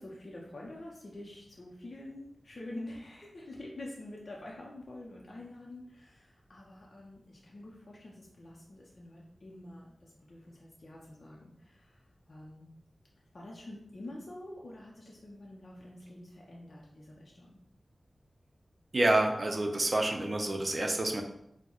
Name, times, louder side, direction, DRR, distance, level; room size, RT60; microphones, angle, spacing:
voice 1, 0.0-12.7 13.3-17.6, left 1 dB, 60° left, -3 dB, 0.5 m, -47 dB
voice 2, 18.9-21.2, right 1 dB, 40° right, 3 dB, 0.5 m, -28 dB
4.4 x 2.1 x 2.9 m, 0.77 s
wide cardioid pair, 65°, 0 cm